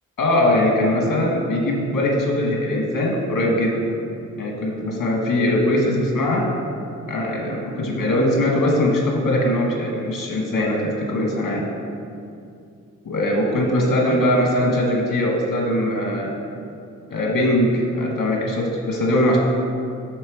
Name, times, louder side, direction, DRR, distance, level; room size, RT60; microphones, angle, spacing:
voice 1, 0.2-3.9 4.4-6.5 7.1-11.6 13.0-16.3 17.1-19.4, left 1 dB, 85° left, -1 dB, 1.6 m, -21 dB
8.7 x 3.2 x 6.4 m, 2.5 s
cardioid pair, 65°, 32 cm